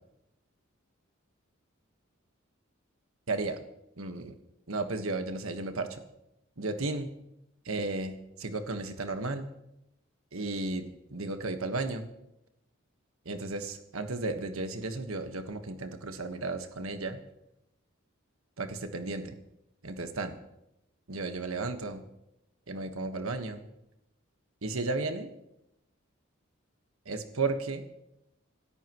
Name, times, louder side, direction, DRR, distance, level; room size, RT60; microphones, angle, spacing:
voice 1, 3.3-3.6 4.0-4.3 4.7-6.0 6.6-7.1 7.6-9.5 10.3-12.1 13.2-17.2 18.6-19.3 19.8-20.4 21.1-22.0 22.7-23.6 24.6-25.3 27.0-27.8, right 3 dB, 90° right, 7 dB, 1.4 m, -34 dB
27.0 x 13.0 x 3.1 m, 0.86 s
head